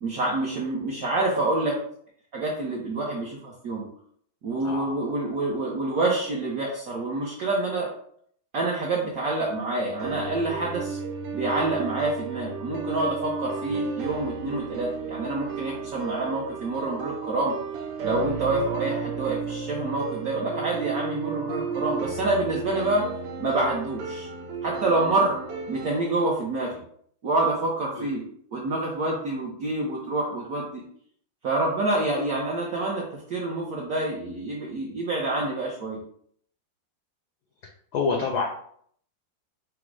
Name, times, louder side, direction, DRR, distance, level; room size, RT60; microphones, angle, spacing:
voice 1, 0.0-1.8 2.3-3.9 4.4-7.9 8.5-11.0 11.3-17.5 18.0-23.1 23.4-24.3 24.6-25.4 25.7-26.7 27.2-28.2 28.5-30.8 31.4-33.0 33.3-36.0, right 2 dB, 70° right, -3 dB, 0.8 m, -27 dB
voice 2, 4.6-5.0 13.7-13.8 27.9-28.1 37.9-38.5, left 4 dB, 80° left, 0 dB, 0.9 m, -27 dB
sound 1, 10.0-26.0, right 6 dB, 85° right, 1.7 m, -33 dB
4.9 x 2.0 x 4.6 m, 0.63 s
omnidirectional pair, 2.4 m